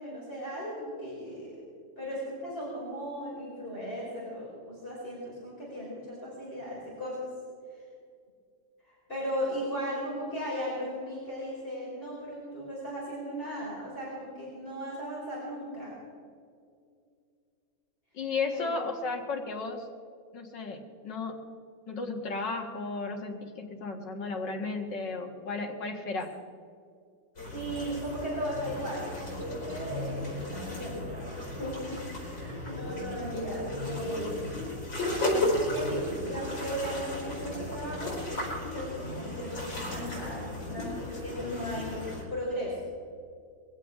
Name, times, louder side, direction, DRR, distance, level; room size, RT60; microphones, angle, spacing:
voice 1, 0.0-1.6 2.0-7.2 8.8-16.0 18.5-18.7 27.5-34.5 35.6-38.2 38.4-42.8, equal, 30° left, -8 dB, 5.2 m, -37 dB
voice 2, 18.1-19.9 20.3-21.4 21.9-26.3, left 4 dB, 70° left, 2 dB, 2.4 m, -34 dB
sound 1, 27.4-42.2, left 1 dB, 85° left, 5.5 m, -34 dB
22.0 x 16.5 x 3.7 m, 2.3 s
omnidirectional pair, 2.0 m